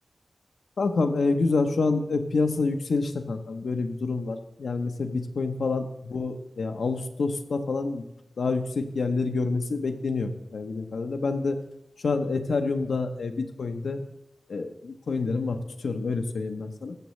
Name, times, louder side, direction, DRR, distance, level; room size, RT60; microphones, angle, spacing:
voice 1, 0.8-8.0 8.4-11.6 12.0-14.0 14.5-17.0, left 3 dB, 85° left, 6 dB, 0.7 m, -27 dB
13.5 x 6.9 x 3.1 m, 0.85 s
wide cardioid pair, 90°, 0 cm